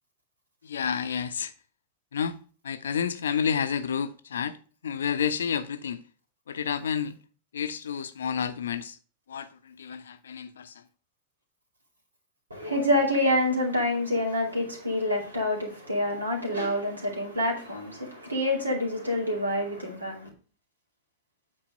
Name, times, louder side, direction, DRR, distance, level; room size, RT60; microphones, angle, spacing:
voice 1, 0.6-1.5 2.1-2.4 2.6-4.6 4.8-6.0 6.5-7.2 7.5-9.0 9.3-10.8, left 7 dB, 65° left, 0.6 m, -30 dB
voice 2, 12.5-20.3, left 1 dB, 80° right, 2.4 m, -27 dB
8.7 x 4.4 x 5.0 m
figure-of-eight pair, 90°, 0 cm